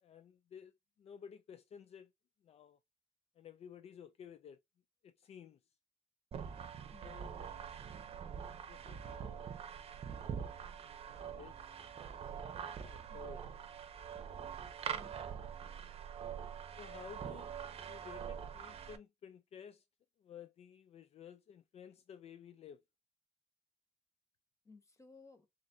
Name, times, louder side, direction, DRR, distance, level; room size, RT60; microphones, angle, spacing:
voice 1, 0.0-0.7 1.0-2.1 2.4-2.8 3.4-4.6 5.0-5.6 7.0-7.5 8.7-9.5 11.2-11.7 12.3-13.6 16.8-17.5 17.8-19.8 20.2-22.8, left 8 dB, 60° left, 0.4 m, -54 dB
sound 1, 6.3-19.0, right 7 dB, 55° right, 0.7 m, -44 dB
voice 2, 6.9-7.3 13.1-13.4 14.9-15.4 24.6-25.5, left 4 dB, 25° left, 1.1 m, -60 dB
7.2 x 2.6 x 2.6 m
wide cardioid pair, 135°, 12 cm